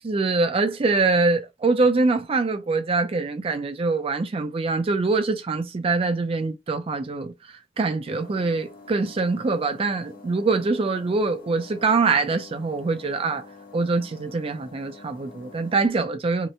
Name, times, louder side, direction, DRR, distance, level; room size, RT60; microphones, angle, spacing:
voice 1, 0.0-7.3 7.8-13.4 13.7-16.5, right 3 dB, 30° right, 0.4 m, -24 dB
sound 1, 8.1-15.9, left 4 dB, 50° left, 0.6 m, -47 dB
2.8 x 2.1 x 2.5 m
head